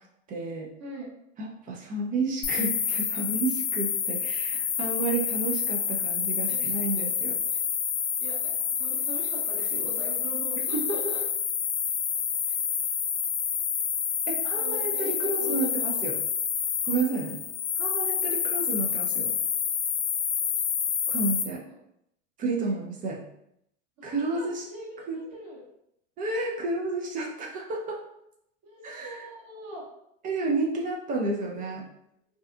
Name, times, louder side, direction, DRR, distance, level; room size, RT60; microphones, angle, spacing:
voice 1, 0.3-0.7 1.4-7.3 10.7-11.0 14.3-16.2 16.8-17.4 17.8-19.3 21.1-21.6 22.4-23.2 24.0-24.7 25.1-25.2 26.2-28.0 28.8-29.3 30.2-31.8, right 3 dB, 25° right, -1 dB, 0.4 m, -31 dB
voice 2, 0.8-1.1 6.5-7.1 7.5-7.6 8.2-11.2 14.5-16.0 21.7-21.8 22.6-22.8 24.0-25.6 28.6-29.9 31.4-31.6, right 1 dB, 40° right, -5 dB, 1.2 m, -42 dB
sound 1, 2.4-21.4, left 7 dB, 75° left, 0.6 m, -28 dB
2.7 x 2.3 x 2.2 m, 0.77 s
hypercardioid pair, 110°, 39 cm